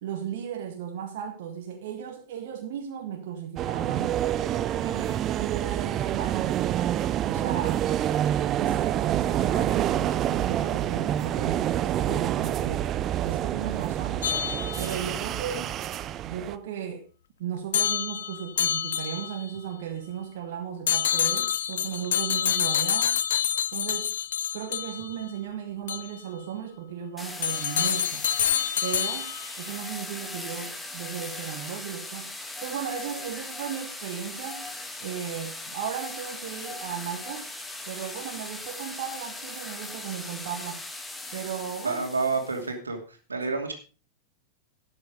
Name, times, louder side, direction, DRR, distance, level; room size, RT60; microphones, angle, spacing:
voice 1, 0.0-4.2 5.4-6.6 7.3-7.8 8.6-14.3 14.8-15.8 16.2-17.0 17.4-23.2 23.7-24.1 24.5-28.3 28.8-32.3 32.6-34.7 35.0-37.5 37.9-40.8 41.3-42.0, right 8 dB, 55° right, 3 dB, 1.8 m, -35 dB
sound 1, 3.6-16.6, right 11 dB, 30° right, 0.7 m, -27 dB
voice 2, 4.8-5.2 41.8-43.7, right 4 dB, 75° right, 4 dB, 2.6 m, -30 dB
sound 2, 14.2-15.2 17.7-19.5 20.9-25.2 25.9-26.1 27.4-29.5, left 9 dB, 65° left, 0.6 m, -27 dB
sound 3, 27.2-42.6, left 2 dB, 10° left, 2.1 m, -39 dB
13.0 x 9.6 x 5.0 m, 0.36 s
figure-of-eight pair, 90°, 0 cm